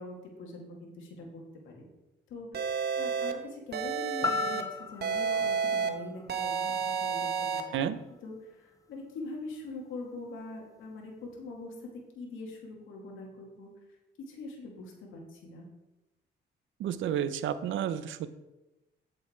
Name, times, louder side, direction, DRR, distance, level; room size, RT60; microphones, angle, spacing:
voice 1, 0.0-1.8 2.3-7.9 8.2-13.7 14.2-15.7, left 2 dB, 80° left, 0 dB, 2.3 m, -43 dB
sound 1, 2.5-3.3 3.7-4.6 5.0-5.9 6.3-7.6, right 6 dB, 55° right, 1.2 m, -30 dB
sound 2, 4.2-8.3 8.8-8.9, left 5 dB, 15° left, 0.4 m, -37 dB
voice 2, 16.8-18.4, right 9 dB, 75° right, 13 dB, 0.7 m, -31 dB
8.3 x 7.8 x 4.5 m, 1.0 s
cardioid pair, 90°, 20 cm